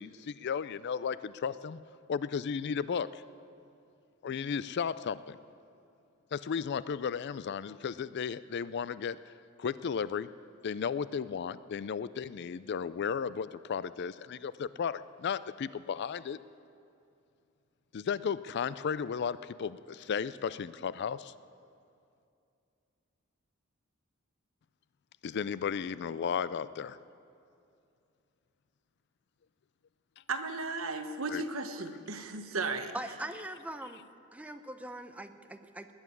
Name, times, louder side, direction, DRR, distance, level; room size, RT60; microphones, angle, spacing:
voice 1, 0.0-1.8 2.1-3.2 4.2-5.4 6.3-9.3 9.6-10.3 10.6-16.4 17.9-21.3 25.2-27.0 31.3-31.4, left 6 dB, 55° left, 16 dB, 0.4 m, -34 dB
voice 2, 30.3-32.9, right 3 dB, 75° right, 7 dB, 1.1 m, -35 dB
voice 3, 32.9-34.0 34.3-35.9, right 1 dB, 5° right, 8 dB, 0.6 m, -41 dB
19.5 x 7.4 x 9.7 m, 2.5 s
head